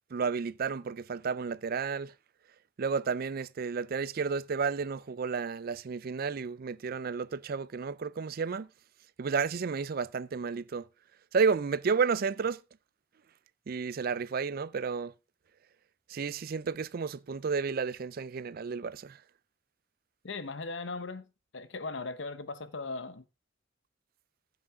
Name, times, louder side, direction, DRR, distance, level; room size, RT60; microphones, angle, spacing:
voice 1, 0.1-2.1 2.8-8.7 9.2-10.9 11.3-12.6 13.7-15.1 16.1-19.2, right 5 dB, 50° right, 0.4 m, -31 dB
voice 2, 20.2-21.3 21.5-23.2, left 3 dB, 75° left, 1.0 m, -38 dB
15.0 x 6.2 x 3.6 m
head